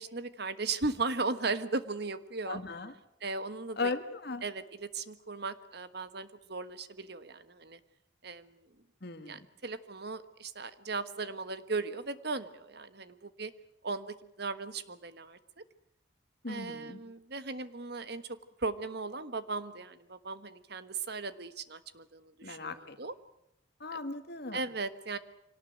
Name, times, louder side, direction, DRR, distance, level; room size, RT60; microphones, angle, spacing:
voice 1, 0.0-2.6 3.2-3.9 4.4-7.8 8.2-8.7 9.3-13.5 13.8-15.4 16.5-18.2 18.6-23.1 23.9-24.0 24.5-25.2, right 3 dB, 55° right, 12 dB, 1.5 m, -37 dB
voice 2, 2.5-2.9 3.8-4.4 9.0-9.4 16.4-17.0 22.4-23.0 23.8-24.6, left 3 dB, 55° left, 9 dB, 1.9 m, -37 dB
25.0 x 18.5 x 9.3 m, 0.80 s
head